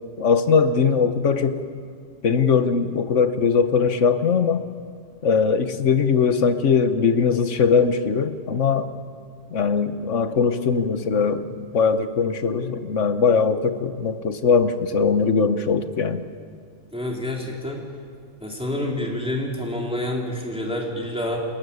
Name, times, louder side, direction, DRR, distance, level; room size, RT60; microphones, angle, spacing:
voice 1, 0.2-1.6 2.2-4.6 5.2-8.9 9.5-11.4 11.7-16.2, left 5 dB, 80° left, 10 dB, 1.5 m, -20 dB
voice 2, 16.9-17.9 18.4-21.4, left 1 dB, 5° right, -1 dB, 3.0 m, -28 dB
28.0 x 15.0 x 9.5 m, 2.2 s
omnidirectional pair, 1.2 m